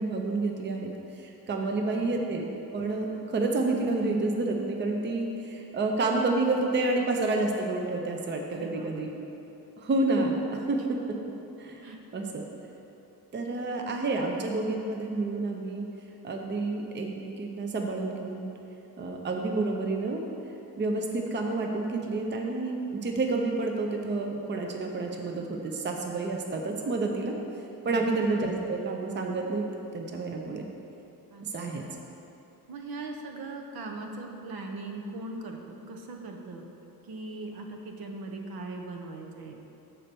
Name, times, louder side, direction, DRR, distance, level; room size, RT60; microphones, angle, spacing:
voice 1, 0.0-2.5 2.7-9.1 9.8-11.2 11.6-12.4 13.3-15.8 16.2-18.5 19.0-20.2 20.8-27.3 27.8-29.7 29.9-30.7 31.5-31.8, right 3 dB, 30° right, 2 dB, 0.6 m, -29 dB
voice 2, 8.5-9.0 11.8-12.0 27.8-28.1 31.3-31.9 32.7-36.6 37.0-39.5, right 2 dB, 75° right, 3 dB, 0.9 m, -40 dB
6.6 x 4.4 x 6.7 m, 2.9 s
cardioid pair, 135°, 37 cm